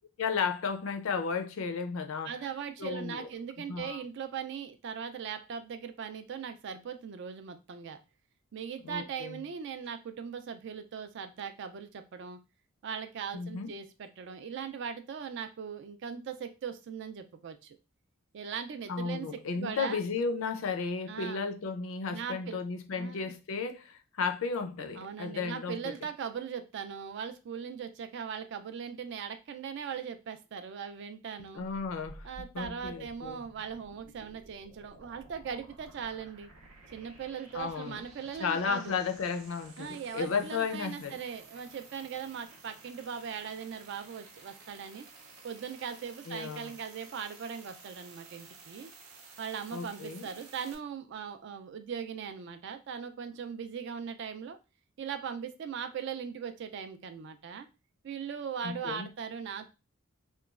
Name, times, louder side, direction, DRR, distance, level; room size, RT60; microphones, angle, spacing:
voice 1, 0.2-2.3 2.8-3.3 3.7-4.0 8.8-9.4 13.3-13.7 18.9-25.8 31.5-32.3 32.5-33.4 37.5-38.0 38.4-41.2 46.3-46.7 49.7-50.3 58.6-59.1, left 5 dB, 65° left, 0.4 m, -34 dB
voice 2, 2.2-8.0 8.5-12.4 12.8-17.8 18.3-20.0 21.1-21.5 22.1-22.6 23.0-23.3 24.9-31.6 32.2-36.5 36.9-39.0 39.8-45.1 45.4-48.9 49.4-54.6 55.0-57.7 58.0-59.7, right 7 dB, 55° right, 0.3 m, -39 dB
sound 1, 31.6-50.8, right 3 dB, 85° right, 0.6 m, -53 dB
2.9 x 2.2 x 2.3 m
head